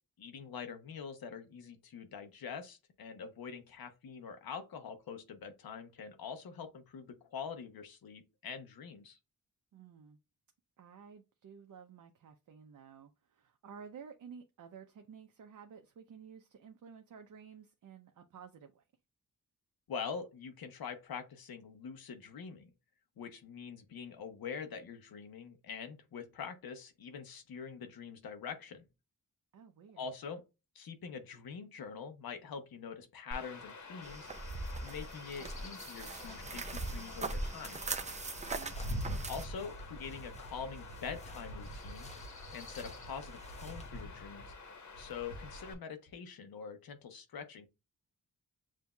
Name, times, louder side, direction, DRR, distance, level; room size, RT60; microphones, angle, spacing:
voice 1, 0.2-9.2 19.9-22.7 23.2-28.8 30.0-30.4 30.7-34.3 34.8-37.8 39.3-42.1 42.5-44.4 45.0-47.7, left 6 dB, 80° left, 0.9 m, -44 dB
voice 2, 9.7-10.2 10.8-18.8 29.5-30.1 38.4-38.7, right 6 dB, 60° right, 0.6 m, -53 dB
Chirp tweet / Wind / Stream, 33.3-45.7, left 1 dB, 50° left, 1.3 m, -45 dB
sound 1, 34.0-39.5, right 3 dB, 20° right, 0.4 m, -40 dB
sound 2, 35.4-44.0, left 2 dB, 20° left, 0.9 m, -57 dB
7.4 x 2.7 x 2.2 m
wide cardioid pair, 135°, 35 cm